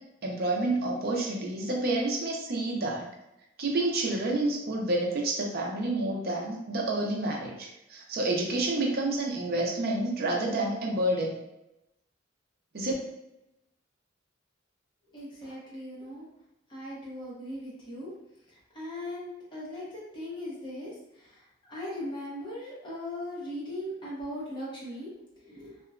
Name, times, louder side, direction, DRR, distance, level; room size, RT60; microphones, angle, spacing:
voice 1, 0.2-3.1 3.6-11.4 12.7-12.9, right 2 dB, 50° right, -1 dB, 0.6 m, -29 dB
voice 2, 15.1-16.3 16.7-18.1 18.5-25.1 25.4-25.8, left 1 dB, 25° left, -7 dB, 1.0 m, -39 dB
2.8 x 2.2 x 2.4 m, 0.88 s
head